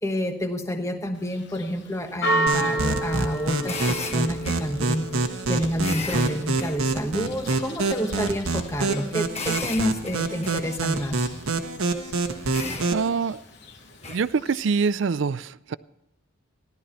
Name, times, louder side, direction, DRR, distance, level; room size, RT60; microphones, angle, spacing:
voice 1, 0.0-5.1 5.5-11.2, equal, 15° left, 6 dB, 1.1 m, -29 dB
Church bell, 1.1-15.0, right 2 dB, 55° left, 1.0 m, -34 dB
sound 1, 2.5-13.1, right 3 dB, 85° right, 1.3 m, -27 dB
sound 2, 2.9-14.3, left 4 dB, 30° left, 1.3 m, -38 dB
voice 2, 12.9-13.4 14.1-15.8, right 5 dB, 60° right, 18 dB, 0.4 m, -25 dB
14.5 x 12.0 x 4.3 m, 0.86 s
head